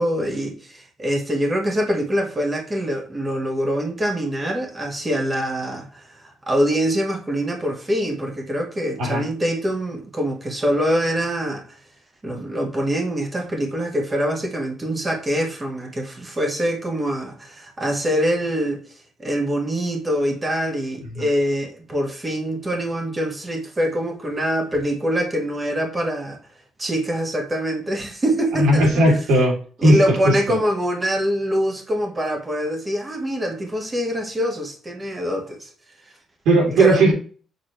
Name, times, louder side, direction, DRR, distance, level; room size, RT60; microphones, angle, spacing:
voice 1, 0.0-6.0 6.5-11.6 12.2-18.8 19.2-26.4 26.8-29.0 29.8-35.7 36.8-37.1, equal, 20° right, 1.4 m, -24 dB
voice 2, 28.6-30.6 36.4-37.1, right 1 dB, 90° right, 3.1 m, -17 dB
7.3 x 6.3 x 3.3 m
cardioid pair, 145°, 0 cm